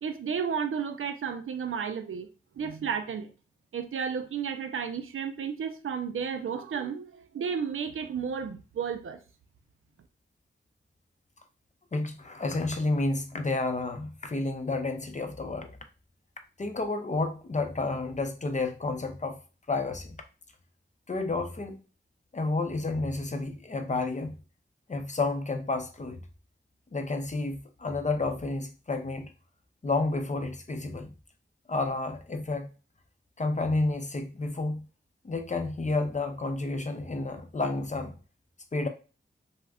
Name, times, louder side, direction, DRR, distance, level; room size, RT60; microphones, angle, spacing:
voice 1, 0.0-2.3 2.6-3.3 3.7-9.2, right 6 dB, 80° right, 0.4 m, -32 dB
voice 2, 11.9-15.8 16.6-19.4 19.7-20.2 21.1-21.8 22.3-24.4 24.9-26.2 26.9-29.3 29.8-31.1 31.7-32.7 33.4-34.9 35.2-38.1 38.7-38.9, left 3 dB, 35° left, 0.5 m, -30 dB
2.4 x 2.1 x 3.4 m
cardioid pair, 50°, 21 cm